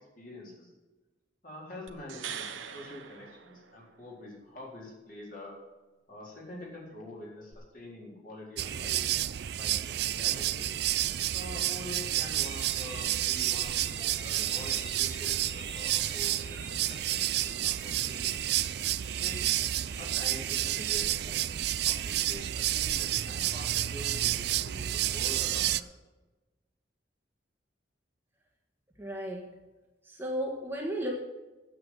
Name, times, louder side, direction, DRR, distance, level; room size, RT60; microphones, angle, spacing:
voice 1, 0.2-0.7 1.4-5.5 6.1-9.0 9.4-9.7 10.1-10.8 11.3-18.4 19.2-19.5 20.0-21.4 21.8-26.0, left 1 dB, 45° left, -3 dB, 4.3 m, -46 dB
sound 1, 1.9-4.1 7.5-7.6, right 7 dB, 90° right, 1.1 m, -42 dB
sound 2, 8.6-25.8, right 13 dB, 55° right, 0.4 m, -30 dB
sound 3, 12.3-23.6, left 1 dB, 85° left, 3.4 m, -51 dB
voice 2, 29.0-29.5 30.0-31.1, right 1 dB, 10° right, -1 dB, 1.5 m, -34 dB
9.5 x 8.4 x 7.7 m, 1.1 s
head